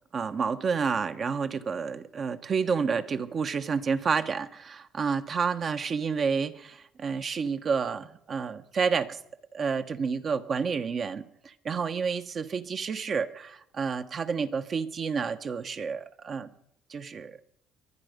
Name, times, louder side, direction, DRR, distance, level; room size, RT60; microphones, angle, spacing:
voice 1, 0.1-9.2 9.5-16.5 16.9-17.4, right 5 dB, 45° right, 1.2 m, -30 dB
23.0 x 10.0 x 5.2 m
supercardioid pair, 80°, 0 cm